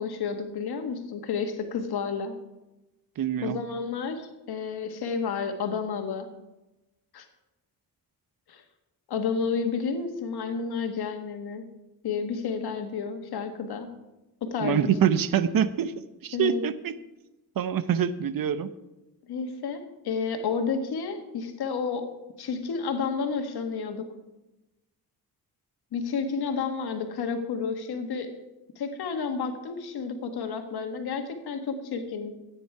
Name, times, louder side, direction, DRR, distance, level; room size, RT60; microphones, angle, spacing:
voice 1, 0.0-2.4 3.4-6.3 7.1-7.3 8.5-8.6 9.1-11.6 12.0-13.9 14.4-14.9 16.3-16.6 19.3-22.1 22.4-24.1 25.9-28.3 28.8-32.3, left 5 dB, 80° left, 6 dB, 1.7 m, -31 dB
voice 2, 3.2-3.6 14.6-15.9 16.2-16.9 17.6-18.7, right 8 dB, 60° right, 14 dB, 0.8 m, -25 dB
14.0 x 9.3 x 4.7 m, 1.0 s
cardioid pair, 75°, 38 cm